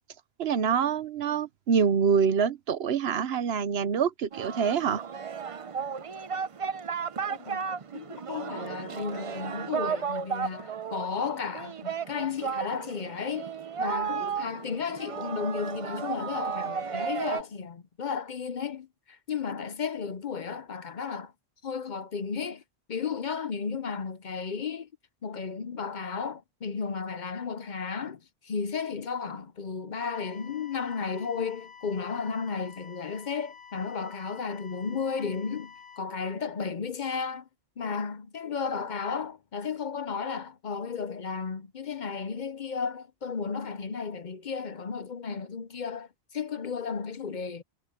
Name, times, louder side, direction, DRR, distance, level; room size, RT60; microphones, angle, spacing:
voice 1, 0.4-5.0, right 6 dB, 75° right, 1.0 m, -26 dB
Singing, 4.3-17.4, right 6 dB, 40° right, 0.6 m, -34 dB
voice 2, 7.3-7.7 7.9-13.5 13.8-21.3 21.6-22.6 22.9-24.9 25.2-37.5 37.8-47.6, left 5 dB, 50° left, 0.8 m, -34 dB
sound 1, 30.1-36.0, left 7 dB, 25° left, 3.1 m, -50 dB
omnidirectional pair, 1.1 m